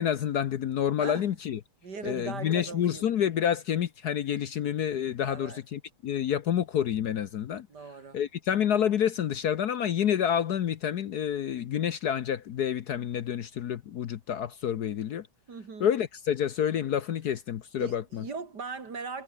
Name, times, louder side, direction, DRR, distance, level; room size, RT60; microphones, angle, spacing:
voice 1, 0.0-1.6 2.0-7.7 8.1-15.3 15.8-18.2, left 9 dB, 60° left, 1.3 m, -28 dB
voice 2, 1.0-1.3 1.8-3.0 5.2-5.6 7.7-8.2 15.5-15.9 17.8-19.2, right 4 dB, 55° right, 3.2 m, -39 dB
omnidirectional pair, 2.1 m